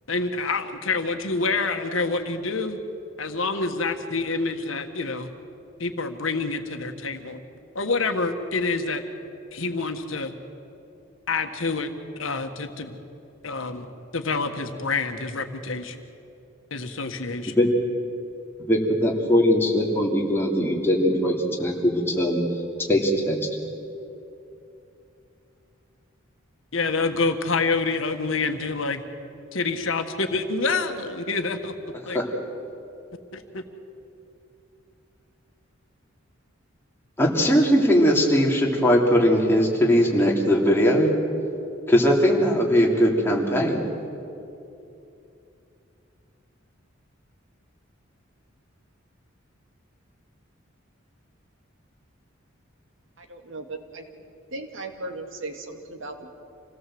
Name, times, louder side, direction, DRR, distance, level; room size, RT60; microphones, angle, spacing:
voice 1, 0.1-2.8 3.2-5.3 5.8-7.4 7.7-9.0 9.5-10.3 11.3-11.9 12.2-13.0 13.4-13.9 14.1-16.0 16.7-17.5 26.7-29.0 29.5-31.7 32.1-32.2 33.3-33.6, left 3 dB, 75° left, 6 dB, 1.6 m, -27 dB
voice 2, 18.7-22.4 22.9-23.4 32.1-32.2 37.2-41.1 41.9-43.8, equal, 10° left, -2 dB, 3.2 m, -20 dB
voice 3, 53.2-54.0 54.5-56.4, right 2 dB, 65° right, 4 dB, 2.1 m, -37 dB
27.0 x 17.5 x 7.8 m, 2.7 s
head